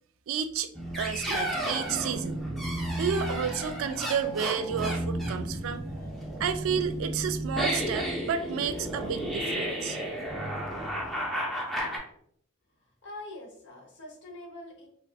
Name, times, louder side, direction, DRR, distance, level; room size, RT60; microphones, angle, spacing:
voice 1, 0.3-0.7 1.0-2.4 2.9-5.8 6.4-10.0, right 7 dB, 70° right, 11 dB, 0.3 m, -31 dB
sound 1, 0.7-12.0, right 1 dB, ahead, 0.5 m, -32 dB
voice 2, 13.0-14.9, left 1 dB, 60° left, 0 dB, 0.9 m, -44 dB
3.4 x 2.4 x 2.3 m, 0.67 s
head